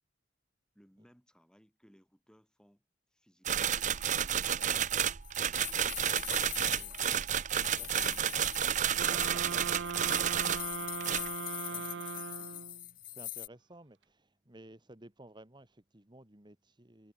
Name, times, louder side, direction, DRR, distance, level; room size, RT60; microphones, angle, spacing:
voice 1, 0.7-2.8 3.1-4.9 5.5-7.2 7.6-8.8 9.3-12.7, equal, 5° left, 7.7 m, -64 dB
sound 1, 3.4-10.7 11.0-11.3, right 9 dB, 45° right, 0.8 m, -31 dB
sound 2, 4.6-13.5, left 14 dB, 55° left, 2.0 m, -43 dB
sound 3, 9.0-12.9, right 5 dB, 80° right, 0.6 m, -39 dB
voice 2, 9.1-9.6 11.7-11.9 13.1-17.1, right 1 dB, 25° right, 2.2 m, -54 dB
head